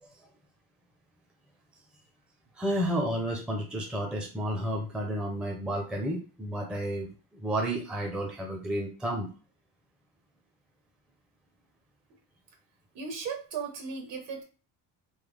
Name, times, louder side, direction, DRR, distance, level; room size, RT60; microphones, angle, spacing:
voice 1, 2.5-9.3, right 1 dB, ahead, 0 dB, 0.5 m, -31 dB
voice 2, 12.9-14.4, right 5 dB, 65° right, 2 dB, 1.3 m, -36 dB
3.5 x 2.0 x 3.3 m, 0.34 s
cardioid pair, 130°, 47 cm